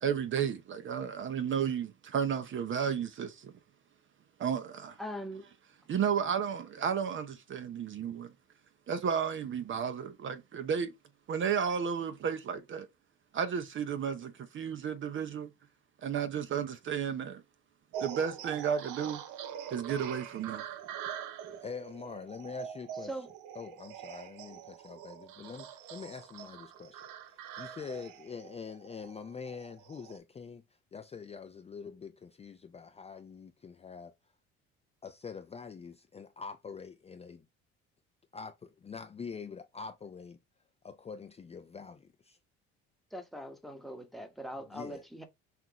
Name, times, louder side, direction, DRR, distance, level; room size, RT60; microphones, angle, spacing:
voice 1, 0.0-3.5 4.4-5.0 5.9-8.3 8.9-10.9 11.3-12.9 13.3-15.5 16.0-17.4 18.0-19.2 19.7-20.6, right 7 dB, 40° right, 0.7 m, -33 dB
voice 2, 5.0-5.4 23.1-23.3 43.1-45.2, equal, ahead, 1.1 m, -41 dB
sound 1, 17.9-30.2, right 9 dB, 80° right, 0.7 m, -44 dB
voice 3, 21.6-23.3 23.5-30.6 30.9-34.1 35.0-37.5 38.3-40.4 40.8-42.4 44.5-45.0, left 5 dB, 20° left, 0.4 m, -45 dB
5.8 x 2.5 x 2.9 m
supercardioid pair, 90°, 29 cm